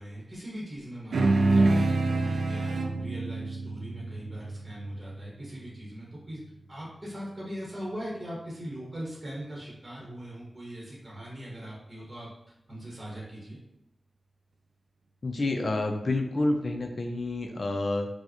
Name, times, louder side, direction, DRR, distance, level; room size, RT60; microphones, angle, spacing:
voice 1, 0.0-6.4 6.7-12.3 12.7-13.6, equal, 25° right, -5 dB, 1.0 m, -40 dB
sound 1, 1.1-5.9, right 2 dB, 80° right, 0.3 m, -27 dB
voice 2, 15.2-18.1, left 2 dB, 50° left, 3 dB, 0.4 m, -28 dB
4.5 x 2.1 x 2.9 m, 0.84 s
wide cardioid pair, 115°, 0 cm